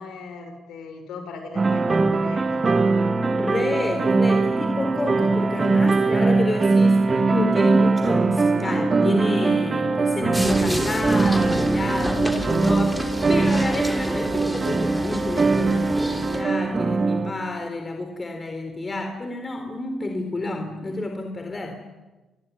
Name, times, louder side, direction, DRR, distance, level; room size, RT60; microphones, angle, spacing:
voice 1, 0.0-2.6, left 4 dB, 80° left, 6 dB, 6.2 m, -38 dB
sound 1, 1.6-17.3, right 3 dB, 35° right, 2.4 m, -21 dB
voice 2, 3.3-21.8, left 2 dB, 25° left, 5 dB, 4.0 m, -29 dB
sound 2, 10.3-16.4, equal, ahead, 3.7 m, -31 dB
28.5 x 20.5 x 10.0 m, 1.1 s
cardioid pair, 90°, 0 cm